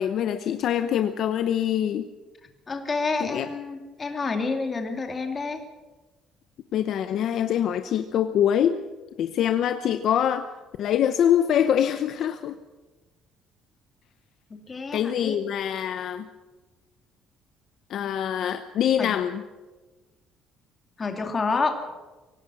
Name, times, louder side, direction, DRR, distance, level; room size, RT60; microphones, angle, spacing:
voice 1, 0.0-2.1 3.2-3.5 6.7-8.8 9.2-10.5 10.8-12.6 14.9-16.2 17.9-19.4, left 9 dB, 45° left, 9 dB, 0.8 m, -24 dB
voice 2, 2.7-5.6 14.5-15.4 19.0-19.1 21.0-21.8, left 4 dB, 20° left, 4 dB, 2.5 m, -28 dB
24.0 x 17.5 x 6.2 m, 1.2 s
cardioid pair, 180°, 0 cm